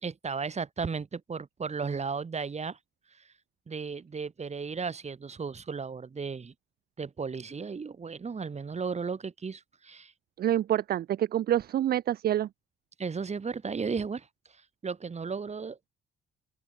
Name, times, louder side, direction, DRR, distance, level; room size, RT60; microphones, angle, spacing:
voice 1, 0.0-2.8 3.1-3.2 3.7-6.5 7.0-10.1 13.0-14.3 14.8-15.9, right 5 dB, 35° right, 2.8 m, -35 dB
voice 2, 10.4-12.5, right 11 dB, 50° right, 0.4 m, -27 dB
open air
cardioid pair, 90°, 20 cm